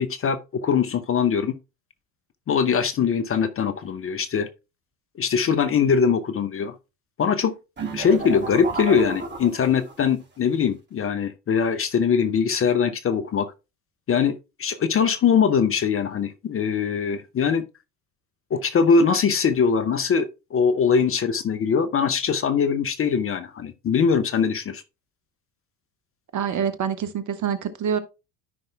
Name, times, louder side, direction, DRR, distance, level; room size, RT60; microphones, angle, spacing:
voice 1, 0.0-1.6 2.5-4.5 5.2-6.7 7.2-7.5 7.9-13.5 14.1-17.6 18.5-24.8, left 6 dB, 30° left, 0.8 m, -22 dB
sound 1, 7.8-10.1, right 3 dB, 25° right, 3.0 m, -32 dB
voice 2, 26.3-28.0, right 7 dB, 40° right, 1.5 m, -26 dB
13.0 x 5.6 x 2.3 m
hypercardioid pair, 65°, 44 cm